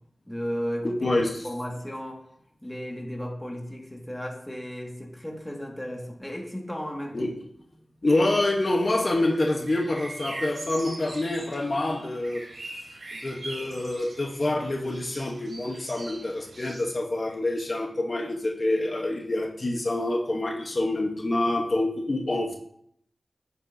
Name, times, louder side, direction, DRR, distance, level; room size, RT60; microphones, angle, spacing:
voice 1, 0.3-2.2 2.6-7.3, equal, 10° left, 0 dB, 1.9 m, -34 dB
voice 2, 0.8-1.3 7.1-7.3 8.0-12.4 13.1-22.5, left 2 dB, 50° left, 1 dB, 1.1 m, -26 dB
sound 1, 8.9-16.8, right 2 dB, 80° right, 2.0 m, -42 dB
9.8 x 7.0 x 2.7 m, 0.70 s
cardioid pair, 55°, 0 cm